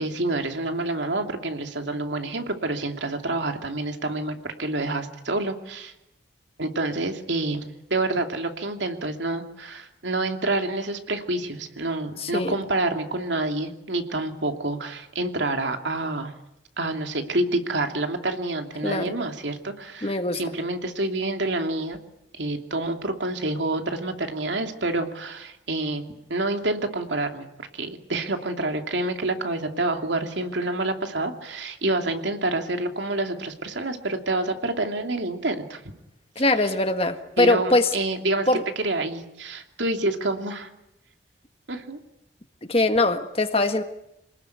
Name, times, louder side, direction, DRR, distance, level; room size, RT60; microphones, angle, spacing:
voice 1, 0.0-5.9 6.6-16.3 16.8-22.0 22.3-35.8 36.4-36.7 37.4-38.5 38.8-40.7 41.7-42.0, right 2 dB, 80° right, 5 dB, 2.7 m, -28 dB
voice 2, 12.2-12.5 18.8-19.1 20.0-20.4 36.3-37.9 38.5-38.6 42.7-43.8, left 2 dB, 30° left, 7 dB, 1.6 m, -22 dB
27.5 x 20.0 x 9.5 m, 0.87 s
head